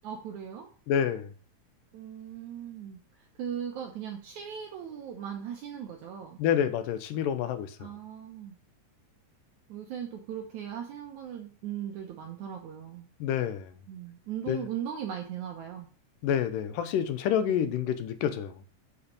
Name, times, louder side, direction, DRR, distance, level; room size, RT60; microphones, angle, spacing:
voice 1, 0.0-0.7 1.9-6.4 7.8-8.5 9.7-13.1 13.9-15.9 17.5-17.7, right 9 dB, 70° right, 2.1 m, -38 dB
voice 2, 0.9-1.3 6.4-7.9 13.2-13.7 14.5-14.6 16.2-18.5, left 9 dB, 85° left, 2.4 m, -28 dB
7.1 x 5.0 x 5.2 m
omnidirectional pair, 3.8 m